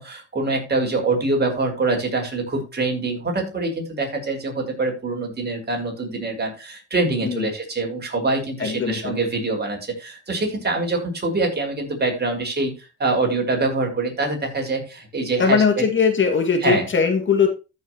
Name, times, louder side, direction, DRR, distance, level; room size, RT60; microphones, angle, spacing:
voice 1, 0.0-15.9 16.6-16.9, right 3 dB, 35° right, 2 dB, 5.3 m, -24 dB
voice 2, 8.6-9.2 15.4-17.5, left 5 dB, 40° left, 4 dB, 2.2 m, -20 dB
14.0 x 6.6 x 3.0 m, 0.29 s
cardioid pair, 90°, 30 cm